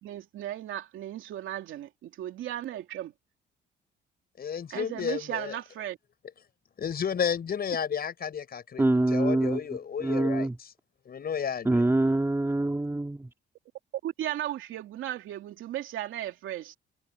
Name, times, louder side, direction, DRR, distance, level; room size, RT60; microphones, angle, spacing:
voice 1, 0.0-3.1 4.7-6.0 14.0-16.8, right 12 dB, 80° right, 3.0 m, -36 dB
voice 2, 4.4-5.6 6.8-10.7 11.1-11.9, left 7 dB, 50° left, 6.9 m, -32 dB
voice 3, 8.8-9.6 10.0-10.6 11.6-13.3, right 2 dB, 10° right, 3.1 m, -25 dB
cardioid pair, 90°, 20 cm